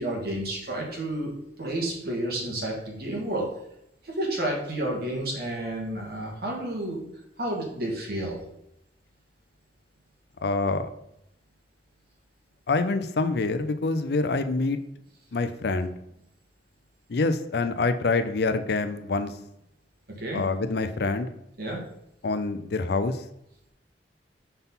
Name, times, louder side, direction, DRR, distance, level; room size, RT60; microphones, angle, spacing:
voice 1, 0.0-1.3 1.6-3.5 4.0-7.1 7.4-8.4 20.2-20.4 21.6-21.8, right 1 dB, 60° right, -2 dB, 1.9 m, -30 dB
voice 2, 10.4-10.9 12.7-14.8 15.3-15.9 17.1-19.3 20.3-21.3 22.2-23.2, left 3 dB, 65° left, 9 dB, 0.5 m, -26 dB
5.5 x 4.0 x 5.5 m, 0.81 s
head